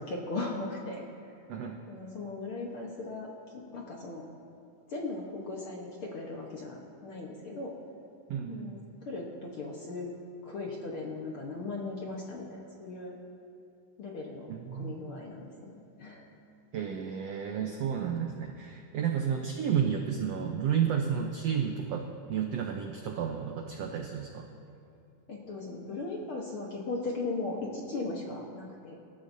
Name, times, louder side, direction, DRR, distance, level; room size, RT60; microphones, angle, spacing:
voice 1, 0.0-1.3 1.9-4.2 4.9-7.7 8.5-10.1 10.4-13.2 14.0-15.7 16.0-16.3 19.1-19.2 25.3-28.9, left 3 dB, 60° left, -2 dB, 1.5 m, -38 dB
voice 2, 8.3-8.7 14.5-15.0 16.7-24.5, right 8 dB, 80° right, 2 dB, 1.4 m, -31 dB
26.0 x 13.0 x 2.7 m, 2.5 s
omnidirectional pair, 3.9 m